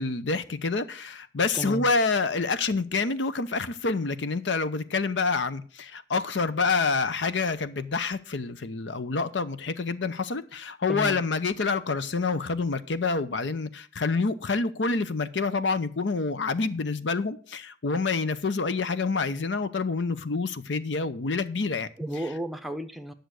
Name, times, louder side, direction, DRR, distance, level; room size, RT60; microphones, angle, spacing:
voice 1, 0.0-21.9, left 4 dB, 85° left, 0.7 m, -27 dB
voice 2, 1.5-1.9 10.9-11.2 22.0-23.1, right 1 dB, ahead, 0.7 m, -33 dB
10.5 x 6.5 x 6.3 m
head